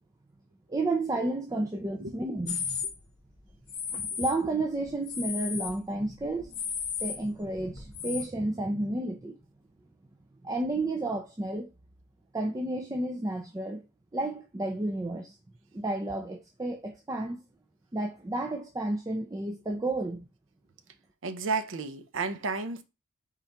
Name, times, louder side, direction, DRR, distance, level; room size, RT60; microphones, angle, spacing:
voice 1, 0.7-2.8 3.9-6.6 7.0-9.4 10.4-11.7 12.3-13.8 14.1-15.4 15.7-17.4 17.9-20.3, right 2 dB, 15° right, 0.4 m, -31 dB
sound 1, 2.5-2.9 3.7-4.4 4.8-5.8 6.1-8.2, left 7 dB, 55° left, 1.0 m, -34 dB
voice 2, 21.2-22.8, right 4 dB, 65° right, 0.6 m, -32 dB
4.2 x 3.8 x 3.4 m
head